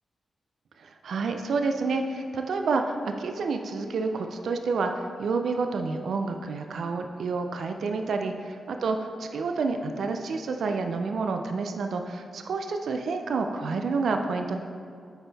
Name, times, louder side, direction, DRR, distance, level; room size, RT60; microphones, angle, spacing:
voice 1, 0.8-14.6, right 4 dB, 75° right, 5 dB, 0.4 m, -29 dB
6.7 x 4.4 x 4.0 m, 2.3 s
cardioid pair, 55°, 0 cm